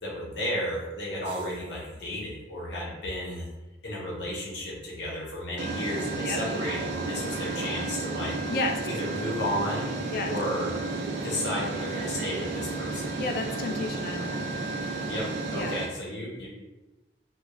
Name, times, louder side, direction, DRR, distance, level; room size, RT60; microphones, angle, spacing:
voice 1, 0.0-3.4 3.8-8.3 8.8-9.9 10.2-10.7 11.2-13.1 15.1-15.3 15.5-16.5, left 1 dB, 75° left, -4 dB, 0.8 m, -33 dB
sound 1, 1.2-1.7 3.4-3.5 5.6-15.9, right 3 dB, 75° right, 0.4 m, -32 dB
voice 2, 8.5-8.8 10.1-10.3 13.2-14.4 15.5-15.8, left 3 dB, 50° left, 3 dB, 0.3 m, -31 dB
3.0 x 2.2 x 2.2 m, 1.1 s
head